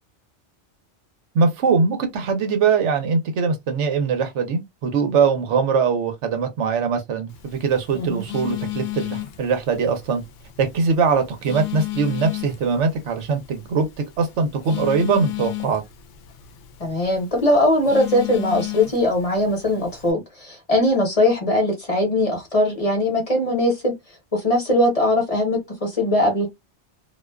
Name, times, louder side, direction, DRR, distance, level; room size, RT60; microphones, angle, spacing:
voice 1, 1.3-10.2 10.6-13.9 14.2-15.8, right 5 dB, 85° right, 1.0 m, -22 dB
Telephone, 7.3-20.1, left 16 dB, 65° left, 0.7 m, -34 dB
voice 2, 16.8-23.9 24.3-26.5, left 1 dB, 35° left, 0.8 m, -20 dB
2.4 x 2.2 x 2.2 m
omnidirectional pair, 1.2 m